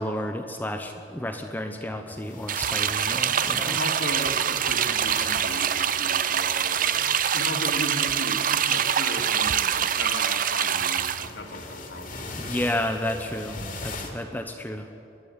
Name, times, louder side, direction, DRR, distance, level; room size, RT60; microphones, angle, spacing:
voice 1, 0.0-3.8 12.5-14.9, left 1 dB, 10° left, 5 dB, 0.8 m, -31 dB
sound 1, 2.0-7.0 8.8-9.0 10.9-14.1, left 3 dB, 45° left, 2.7 m, -40 dB
sound 2, 2.5-11.3, right 9 dB, 45° right, 0.6 m, -25 dB
voice 2, 3.6-12.3, left 1 dB, 65° left, 3 dB, 2.5 m, -36 dB
24.5 x 11.5 x 9.4 m, 2.7 s
head